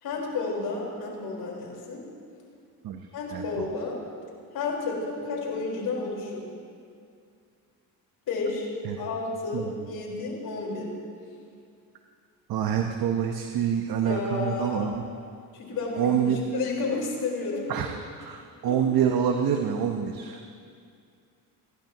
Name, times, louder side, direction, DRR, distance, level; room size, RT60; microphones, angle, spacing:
voice 1, 0.0-2.0 3.1-4.0 4.5-6.4 8.3-8.7 9.0-10.9 14.0-14.9 15.5-17.7 18.7-18.8, left 3 dB, 60° left, -2 dB, 4.7 m, -31 dB
voice 2, 3.3-3.7 8.8-9.0 9.5-9.7 12.5-15.0 16.0-16.4 17.7-17.9 18.1-20.4, right 8 dB, 60° right, 4 dB, 1.1 m, -26 dB
29.5 x 12.0 x 3.0 m, 2.3 s
supercardioid pair, 80°, 40 cm